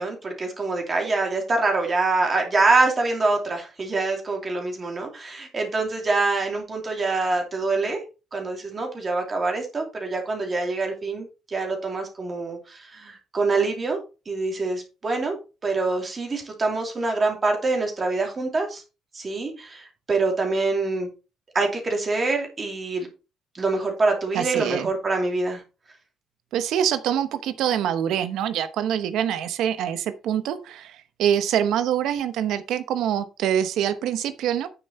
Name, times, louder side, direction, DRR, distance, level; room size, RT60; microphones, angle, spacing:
voice 1, 0.0-8.0 8.3-14.0 14.3-15.3 15.6-18.8 19.1-21.1 21.5-23.1 23.5-25.6, right 3 dB, 25° right, 2 dB, 2.7 m, -25 dB
voice 2, 24.3-24.9 26.5-34.7, right 10 dB, 75° right, 11 dB, 0.9 m, -25 dB
9.2 x 7.1 x 4.2 m, 0.31 s
cardioid pair, 155°, 0 cm